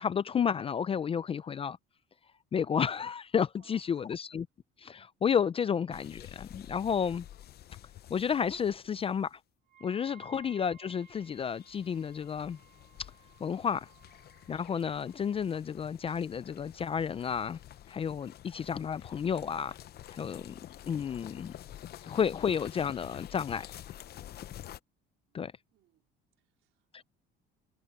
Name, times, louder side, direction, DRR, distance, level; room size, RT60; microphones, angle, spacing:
voice 1, 0.0-1.8 2.5-4.5 4.8-7.3 8.1-9.4 9.8-12.6 13.4-13.9 14.5-17.6 17.9-19.8 20.1-20.6 20.8-21.5 22.1-23.7 25.3-25.5 26.9-27.0, left 7 dB, 25° left, 0.4 m, -31 dB
voice 2, 3.5-4.1 10.1-10.2 25.3-25.4 25.7-26.0 26.4-27.0, right 14 dB, 70° right, 4.1 m, -67 dB
sound 1, 5.9-9.2 11.0-24.8, left 12 dB, 50° left, 0.7 m, -49 dB
Wind instrument woodwind instrument, 9.7-15.5, right 11 dB, 45° right, 3.7 m, -60 dB
cardioid pair, 125°, 21 cm